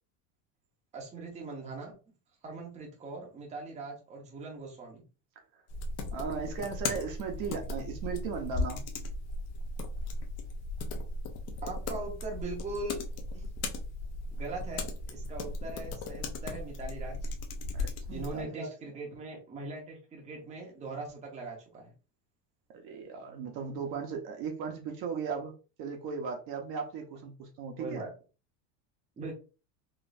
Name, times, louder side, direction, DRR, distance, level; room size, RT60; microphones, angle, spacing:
voice 1, 0.9-1.9 2.4-5.0 11.6-13.0 13.3-13.4 14.3-17.3 18.1-21.9 27.8-28.1 29.2-29.3, right 3 dB, 15° right, 0.7 m, -40 dB
sound 1, 5.7-18.4, left 2 dB, 35° left, 0.5 m, -37 dB
voice 2, 6.1-8.8 17.7-18.7 22.7-25.5 25.8-28.0, right 6 dB, 45° right, 0.8 m, -37 dB
3.9 x 2.4 x 2.5 m
supercardioid pair, 145°, 49 cm